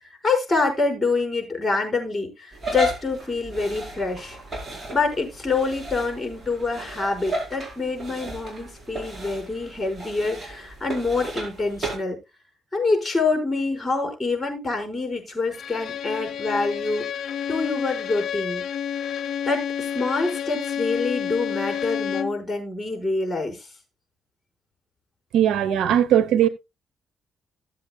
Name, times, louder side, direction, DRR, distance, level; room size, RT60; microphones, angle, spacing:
voice 1, 0.0-4.4 4.9-12.2 12.7-17.1 17.5-18.6 19.5-23.7, left 3 dB, 15° left, 5.1 m, -26 dB
sound 1, 2.5-12.0, equal, 25° right, 5.1 m, -34 dB
Bowed string instrument, 15.5-22.4, left 8 dB, 60° left, 0.9 m, -30 dB
voice 2, 25.3-26.5, right 10 dB, 80° right, 1.0 m, -19 dB
16.0 x 7.7 x 2.3 m
cardioid pair, 90°, 0 cm